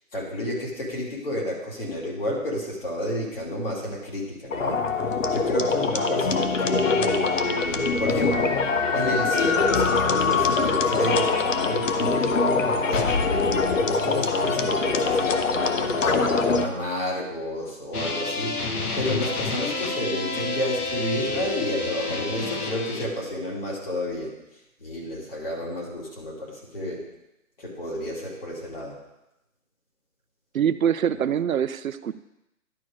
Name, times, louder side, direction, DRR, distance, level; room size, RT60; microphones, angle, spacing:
voice 1, 0.1-4.8 5.3-8.5 8.9-16.2 16.6-18.6 18.9-24.3 24.8-27.1 27.6-29.0 31.1-31.3, left 1 dB, 40° left, -3 dB, 2.4 m, -30 dB
sound 1, 4.5-16.7, left 4 dB, 60° left, 0.8 m, -23 dB
sound 2, 17.9-23.1, left 2 dB, 85° left, 1.3 m, -29 dB
voice 2, 30.5-32.1, right 9 dB, 70° right, 13 dB, 0.5 m, -24 dB
11.0 x 4.4 x 4.8 m, 0.89 s
hypercardioid pair, 175°, 43 cm